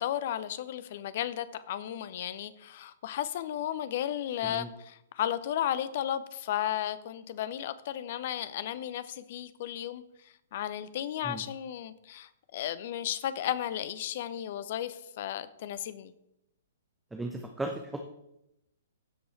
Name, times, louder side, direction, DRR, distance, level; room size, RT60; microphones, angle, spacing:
voice 1, 0.0-16.1, left 11 dB, 45° left, 0.6 m, -34 dB
voice 2, 17.1-18.0, right 2 dB, 5° right, 0.9 m, -36 dB
15.5 x 5.5 x 4.2 m
figure-of-eight pair, 115°, 0 cm